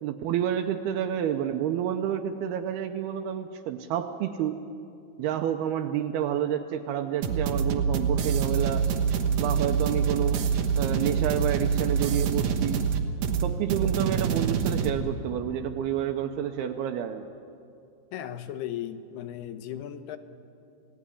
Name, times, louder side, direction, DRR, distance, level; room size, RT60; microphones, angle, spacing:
voice 1, 0.0-4.6 5.2-8.9 9.4-10.5 10.8-12.8 13.4-17.3, right 10 dB, 80° right, 5 dB, 2.8 m, -29 dB
sound 1, 7.2-14.9, right 6 dB, 60° right, 2.2 m, -26 dB
voice 2, 18.1-20.2, left 11 dB, 85° left, 10 dB, 3.1 m, -36 dB
29.0 x 18.0 x 9.9 m, 2.5 s
omnidirectional pair, 4.5 m